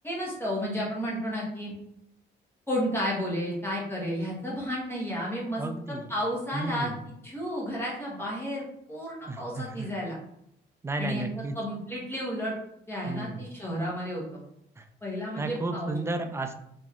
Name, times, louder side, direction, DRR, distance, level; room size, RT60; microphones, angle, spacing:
voice 1, 0.0-1.7 2.7-5.6 6.1-6.9 7.2-8.6 8.9-10.1 11.0-11.2 11.5-12.6 12.9-14.4 15.0-16.0, equal, 10° left, -5 dB, 1.2 m, -32 dB
voice 2, 5.6-6.1 6.5-7.0 9.3-9.9 10.8-11.6 13.1-13.5 14.8-14.9 15.4-16.5, right 2 dB, 15° right, 6 dB, 0.3 m, -33 dB
2.9 x 2.7 x 2.4 m, 0.75 s
cardioid pair, 90°, 20 cm